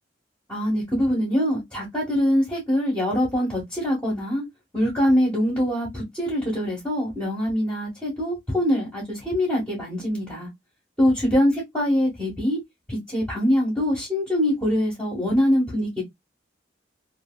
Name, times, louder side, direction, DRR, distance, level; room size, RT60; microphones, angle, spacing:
voice 1, 0.5-4.4 4.7-10.5 11.0-12.6 12.9-16.0, equal, 10° left, 1.5 m, -23 dB
3.2 x 2.9 x 2.3 m
head